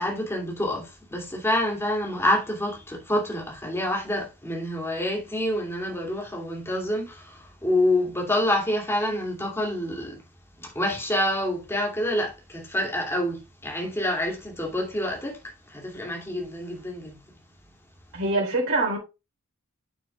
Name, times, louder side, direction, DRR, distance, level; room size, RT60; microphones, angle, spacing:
voice 1, 0.0-10.2 10.6-15.4 15.7-17.1, left 1 dB, 10° left, 2.6 m, -27 dB
voice 2, 18.1-19.0, right 2 dB, 70° right, 3.8 m, -24 dB
8.6 x 7.4 x 2.4 m
head